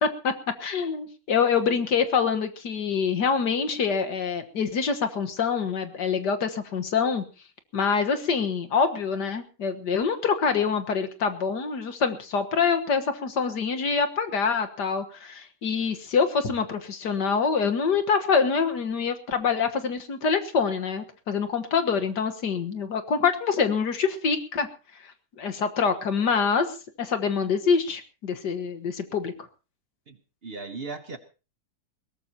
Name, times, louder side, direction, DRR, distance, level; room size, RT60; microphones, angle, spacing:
voice 1, 0.0-0.3 0.6-7.2 7.7-24.7 25.4-26.7 27.0-29.3, left 5 dB, 75° left, 7 dB, 2.0 m, -25 dB
voice 2, 30.4-31.2, right 4 dB, 40° right, 10 dB, 1.1 m, -36 dB
21.0 x 18.0 x 2.9 m, 0.33 s
omnidirectional pair, 1.8 m